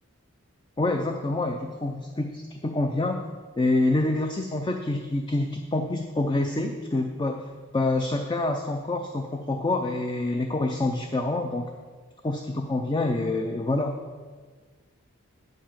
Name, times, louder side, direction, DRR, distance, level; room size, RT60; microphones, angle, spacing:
voice 1, 0.8-3.2 3.6-11.7 12.2-14.0, left 2 dB, 20° left, 5 dB, 0.4 m, -27 dB
9.4 x 5.3 x 7.3 m, 1.5 s
head